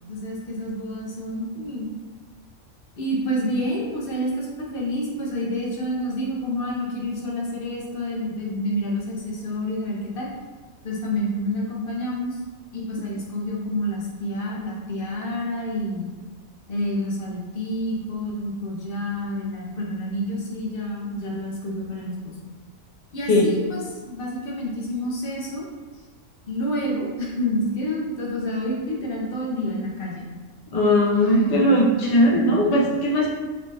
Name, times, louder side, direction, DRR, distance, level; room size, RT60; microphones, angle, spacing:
voice 1, 0.1-1.9 3.0-10.3 10.8-12.4 12.7-16.1 16.7-22.3 23.1-25.7 26.5-30.3 31.1-31.9 32.3-32.7, equal, 50° left, -3 dB, 0.8 m, -28 dB
voice 2, 30.7-33.3, equal, 70° left, -3 dB, 0.3 m, -19 dB
3.3 x 3.3 x 2.6 m, 1.3 s
omnidirectional pair, 1.5 m